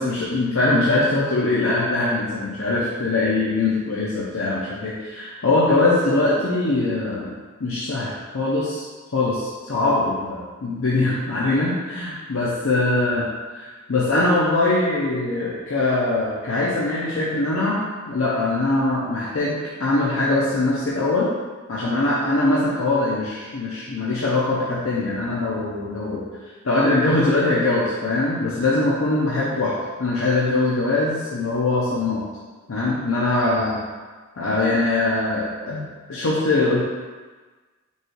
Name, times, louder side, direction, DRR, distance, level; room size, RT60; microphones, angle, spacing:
voice 1, 0.0-7.3 7.6-8.9 9.1-13.3 13.5-21.3 21.7-26.3 26.6-29.7 30.0-32.2 32.7-33.8 34.4-36.8, left 2 dB, 75° left, -6 dB, 0.6 m, -22 dB
5.4 x 2.4 x 3.1 m, 1.3 s
head